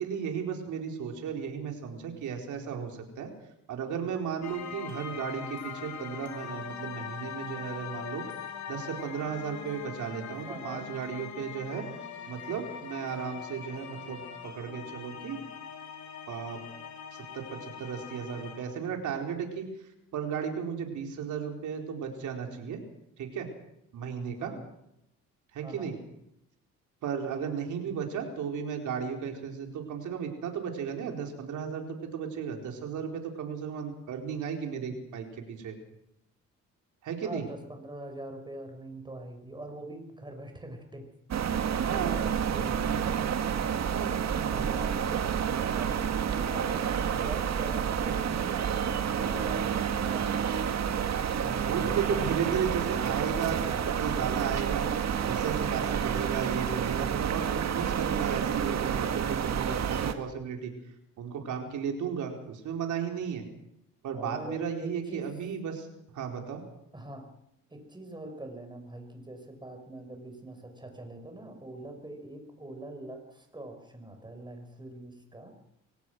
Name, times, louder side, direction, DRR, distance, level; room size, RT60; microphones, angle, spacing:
voice 1, 0.0-3.3 3.7-8.2 8.7-11.8 12.3-15.4 16.3-16.6 17.1-19.6 20.1-22.8 23.2-23.5 23.9-24.5 25.5-25.9 27.0-35.8 37.0-37.4 41.8-42.2 43.9-44.2 51.7-54.9 55.3-60.7 61.2-63.4 64.0-65.9 66.1-66.6, right 7 dB, 75° right, 3 dB, 4.5 m, -34 dB
sound 1, 4.4-18.8, left 7 dB, 65° left, 3.1 m, -42 dB
voice 2, 10.5-10.9 24.4-24.7 25.6-25.9 37.2-41.1 41.8-43.2 44.2-50.4 51.4-52.8 64.1-65.3 66.9-67.3 67.7-75.5, right 1 dB, 15° right, 5 dB, 5.8 m, -43 dB
sound 2, 41.3-60.1, right 8 dB, 60° right, 2.0 m, -29 dB
24.5 x 18.0 x 6.2 m, 0.81 s
cardioid pair, 90°, 30 cm